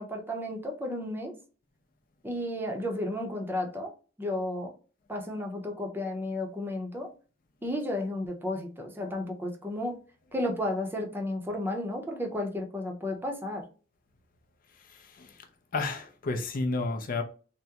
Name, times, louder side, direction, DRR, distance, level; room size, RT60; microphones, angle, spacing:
voice 1, 0.0-1.4 2.2-3.9 4.2-4.7 5.1-7.1 7.6-10.0 10.3-13.6, left 1 dB, 10° right, 0.6 m, -33 dB
voice 2, 14.9-15.4 15.7-17.2, left 3 dB, 50° left, 0.5 m, -31 dB
3.5 x 2.1 x 2.8 m
head